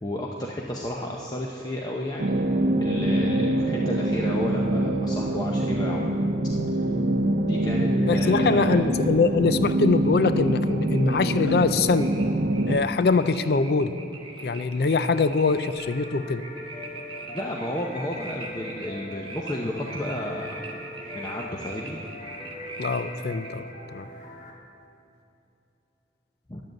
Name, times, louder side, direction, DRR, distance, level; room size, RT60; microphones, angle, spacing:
voice 1, 0.0-2.4 2.8-6.0 7.4-8.8 17.3-20.6 21.1-22.1 26.5-26.6, left 1 dB, 20° left, -2 dB, 0.7 m, -32 dB
sound 1, 2.2-12.8, right 1 dB, 60° right, 0.7 m, -24 dB
voice 2, 8.1-12.1 12.7-13.9 14.4-16.4 22.8-24.1, left 4 dB, 60° left, 12 dB, 0.4 m, -23 dB
sound 2, 9.7-23.6, right 3 dB, 25° right, 1.1 m, -42 dB
sound 3, 15.8-24.5, left 1 dB, 40° left, 1.6 m, -41 dB
10.5 x 7.6 x 7.6 m, 2.7 s
head